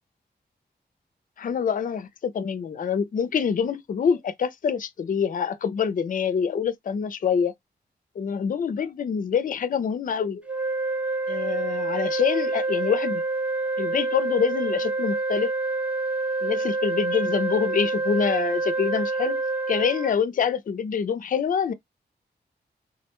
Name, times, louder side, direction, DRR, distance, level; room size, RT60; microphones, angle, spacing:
voice 1, 1.4-7.5 8.2-10.5 11.3-13.2 13.8-15.5 16.4-19.4 19.7-21.7, left 7 dB, 55° left, 0.4 m, -26 dB
sound 1, 10.5-20.1, right 3 dB, 5° right, 0.6 m, -27 dB
3.6 x 2.1 x 2.8 m
wide cardioid pair, 140°, 17 cm